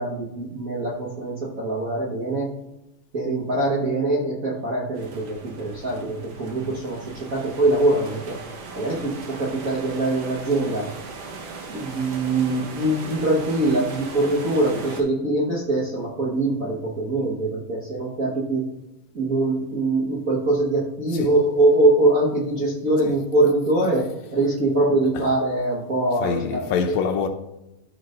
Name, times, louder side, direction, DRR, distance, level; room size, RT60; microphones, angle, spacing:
voice 1, 0.0-2.5 3.1-8.4 8.7-10.9 11.7-18.6 19.1-26.6, right 2 dB, 40° right, 1.2 m, -23 dB
sound 1, 4.9-15.0, right 4 dB, 60° right, 2.0 m, -38 dB
voice 2, 26.2-27.3, left 6 dB, 75° left, 1.9 m, -25 dB
13.5 x 6.2 x 2.6 m
omnidirectional pair, 3.4 m